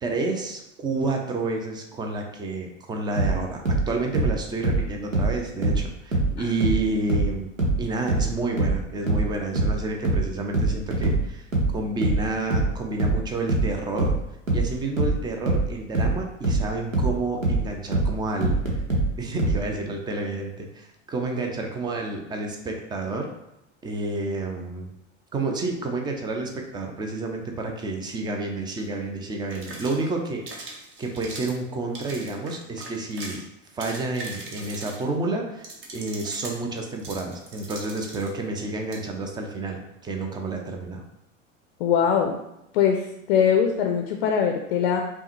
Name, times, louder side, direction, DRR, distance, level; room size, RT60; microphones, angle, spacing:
voice 1, 0.0-7.5 7.8-11.5 11.7-14.1 14.5-18.6 19.2-23.3 23.8-24.9 25.3-30.7 31.0-33.4 33.7-41.0, right 2 dB, 10° right, 2 dB, 0.4 m, -30 dB
sound 1, 3.2-6.4 6.6-19.6, right 2 dB, 85° right, 0.9 m, -23 dB
sound 2, 28.8-28.9 29.5-30.1 30.5-31.6 31.9-33.4 33.7-35.1 35.6-38.3 38.9-39.0, right 2 dB, 30° right, 0.9 m, -40 dB
voice 2, 41.8-42.4 42.7-45.0, left 7 dB, 50° left, 3 dB, 0.5 m, -22 dB
5.2 x 2.2 x 3.0 m, 0.85 s
figure-of-eight pair, 80°, 38 cm